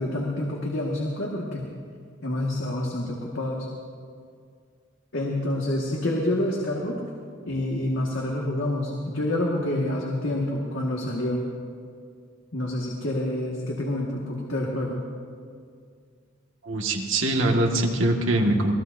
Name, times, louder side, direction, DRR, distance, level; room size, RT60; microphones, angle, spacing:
voice 1, 0.0-1.6 2.2-3.7 5.1-7.0 7.5-11.4 12.5-15.0, left 1 dB, 80° left, -2 dB, 1.8 m, -27 dB
voice 2, 16.6-18.7, right 1 dB, 85° right, 1 dB, 1.8 m, -23 dB
24.5 x 18.0 x 2.7 m, 2.2 s
head